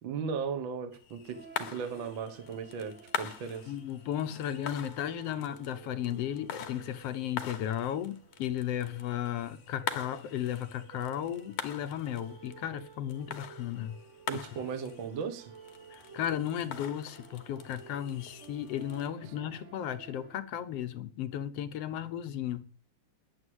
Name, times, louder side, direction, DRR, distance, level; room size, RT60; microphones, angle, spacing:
voice 1, 0.0-3.7 14.3-15.5, right 6 dB, 50° right, 1.9 m, -37 dB
sound 1, 0.9-19.1, left 9 dB, 90° left, 2.9 m, -44 dB
sound 2, 1.2-20.4, right 5 dB, 85° right, 0.6 m, -53 dB
voice 2, 3.7-14.0 15.9-22.7, left 10 dB, 65° left, 1.7 m, -35 dB
11.0 x 9.7 x 7.9 m
omnidirectional pair, 3.4 m